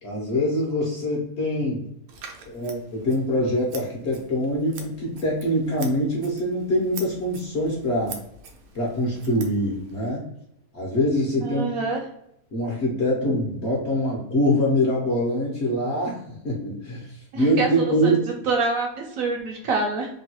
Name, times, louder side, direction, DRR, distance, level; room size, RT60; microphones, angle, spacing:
voice 1, 0.0-1.9 2.5-8.1 8.7-10.2 10.7-11.7 12.5-18.2, equal, 55° left, -4 dB, 0.8 m, -24 dB
Scissors, 2.1-10.1, right 5 dB, 85° right, 1.2 m, -44 dB
voice 2, 11.4-12.0 17.3-18.1 18.5-18.9 19.2-20.1, right 3 dB, 70° right, 0 dB, 0.9 m, -26 dB
3.0 x 2.2 x 2.8 m, 0.75 s
omnidirectional pair, 1.7 m